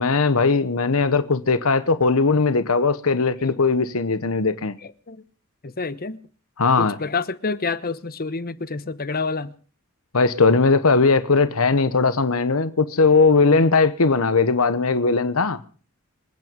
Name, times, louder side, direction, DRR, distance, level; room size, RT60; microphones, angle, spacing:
voice 1, 0.0-4.7 6.6-7.0 10.1-15.6, left 4 dB, 70° left, 1.0 m, -19 dB
voice 2, 4.8-5.2 5.6-6.2 6.8-9.5, left 4 dB, 45° left, 1.0 m, -28 dB
26.5 x 9.3 x 5.2 m
head